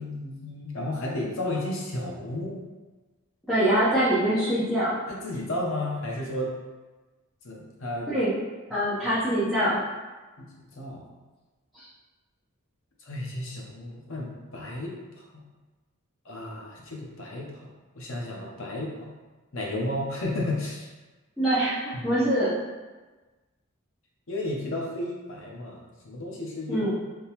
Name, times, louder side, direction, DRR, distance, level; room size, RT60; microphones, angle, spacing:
voice 1, 0.0-2.6 5.1-6.5 7.4-8.1 8.7-8.8 10.4-10.5 10.7-11.0 13.1-15.2 16.2-17.7 17.9-19.1 19.5-20.9 22.0-22.1 24.3-26.9, left 1 dB, 60° left, -2 dB, 0.8 m, -33 dB
voice 2, 3.5-5.0 8.1-8.3 8.7-9.8 11.7-11.9 21.4-22.5 26.7-27.0, right 1 dB, ahead, -13 dB, 0.8 m, -24 dB
3.6 x 2.9 x 2.9 m, 1.2 s
head